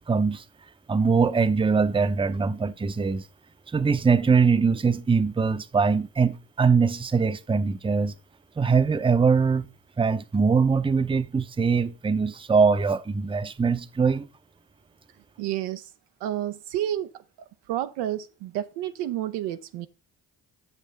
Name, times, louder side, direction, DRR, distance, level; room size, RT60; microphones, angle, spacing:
voice 1, 0.1-0.4 0.9-3.3 3.7-8.1 8.6-9.7 10.0-14.3, right 5 dB, 15° right, 0.5 m, -22 dB
voice 2, 15.4-15.9 16.2-17.1 17.7-19.9, right 12 dB, 85° right, 0.5 m, -30 dB
8.1 x 6.3 x 3.3 m
supercardioid pair, 50°, 40 cm